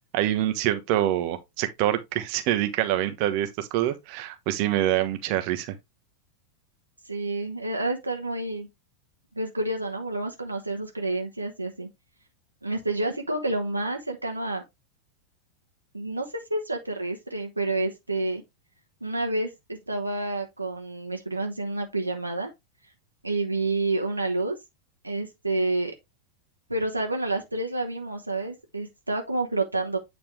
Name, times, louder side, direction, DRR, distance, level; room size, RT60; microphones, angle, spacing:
voice 1, 0.1-5.8, right 12 dB, 45° right, 1.1 m, -25 dB
voice 2, 7.0-8.7 9.4-11.9 12.6-14.6 15.9-18.4 19.0-22.5 23.2-24.6 25.0-25.9 26.7-30.0, right 2 dB, 85° right, 1.1 m, -29 dB
8.7 x 4.3 x 3.3 m
figure-of-eight pair, 90°, 0 cm